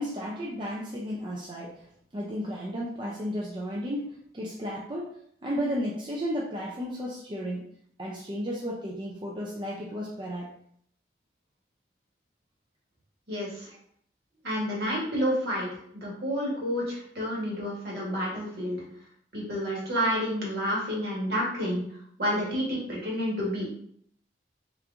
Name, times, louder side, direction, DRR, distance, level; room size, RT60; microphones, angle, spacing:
voice 1, 0.0-1.8 2.1-5.1 5.4-7.6 8.0-10.5 13.7-13.8 14.8-14.9, equal, 25° right, -4 dB, 0.4 m, -33 dB
voice 2, 13.3-13.7 14.4-15.7 15.9-18.8 19.3-21.8 22.2-23.7, equal, 55° right, -4 dB, 1.3 m, -29 dB
3.5 x 2.9 x 2.5 m, 0.65 s
head